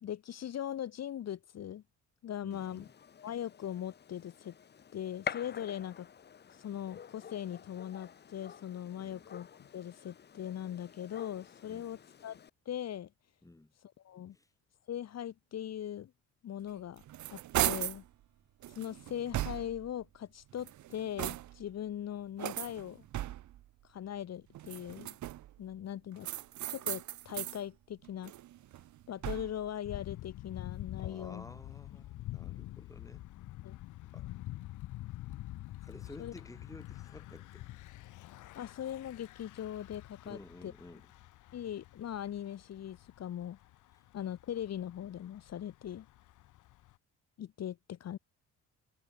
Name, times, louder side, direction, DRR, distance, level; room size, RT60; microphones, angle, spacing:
voice 1, 0.0-1.8 2.2-2.9 3.2-4.6 4.9-6.1 6.5-12.4 12.6-13.1 14.0-14.4 14.9-16.1 16.4-17.0 17.3-18.0 18.7-23.0 23.9-25.2 25.6-26.3 26.7-28.3 29.1-31.5 33.6-33.8 36.2-36.3 38.5-40.7 41.5-43.6 44.1-46.1 47.4-48.2, left 10 dB, 60° left, 1.3 m, -40 dB
voice 2, 2.4-2.9 9.0-9.2 11.7-12.0 13.4-13.7 14.3-14.5 31.0-33.3 34.1-34.3 35.8-37.7 40.2-41.1, left 2 dB, 10° left, 2.2 m, -52 dB
Gunshot gunfire, 2.5-12.5, left 7 dB, 35° left, 0.7 m, -48 dB
sound 1, 16.7-18.1 18.6-19.9 20.5-21.7 22.4-23.6 24.5-25.6 26.2-27.6 28.0-29.7, right 14 dB, 70° right, 1.1 m, -37 dB
Thunder / Bicycle, 29.8-47.0, left 16 dB, 80° left, 0.9 m, -47 dB
cardioid pair, 90°, 30 cm